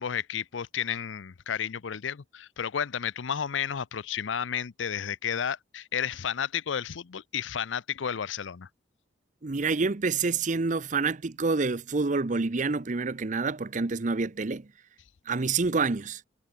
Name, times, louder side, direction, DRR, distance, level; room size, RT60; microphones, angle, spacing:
voice 1, 0.0-8.7, left 8 dB, 90° left, 0.6 m, -32 dB
voice 2, 9.4-14.7 15.3-16.2, right 4 dB, 40° right, 0.7 m, -27 dB
head